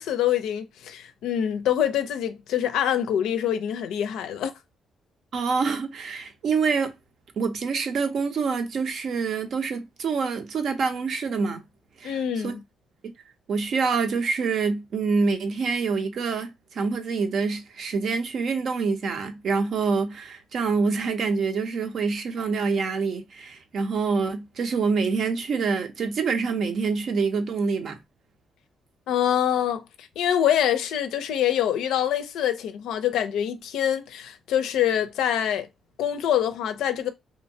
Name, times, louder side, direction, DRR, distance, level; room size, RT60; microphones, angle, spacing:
voice 1, 0.0-4.5 12.0-12.6 29.1-35.7 36.0-37.1, left 10 dB, 85° left, 0.4 m, -25 dB
voice 2, 5.3-6.9 7.4-11.6 12.0-12.5 13.5-28.0, right 5 dB, 60° right, 0.6 m, -26 dB
2.8 x 2.1 x 2.6 m
cardioid pair, 90°, 0 cm